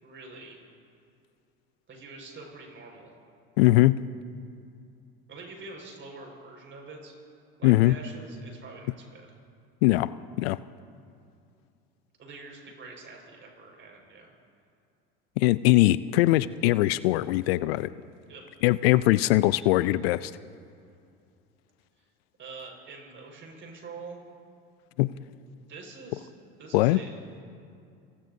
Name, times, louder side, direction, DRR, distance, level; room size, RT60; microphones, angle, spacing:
voice 1, 0.0-0.6 1.9-3.1 5.3-7.1 7.6-9.3 12.2-14.3 18.3-18.4 22.0-22.1 22.4-24.2 25.7-26.3 26.6-27.2, right 3 dB, 40° right, 1 dB, 5.1 m, -45 dB
voice 2, 3.6-4.0 7.6-8.0 9.8-10.1 10.4-10.6 15.4-17.9 18.6-20.3 25.0-25.1 26.7-27.0, left 18 dB, 80° left, 17 dB, 0.5 m, -21 dB
28.0 x 17.0 x 2.7 m, 2.4 s
hypercardioid pair, 85°, 30 cm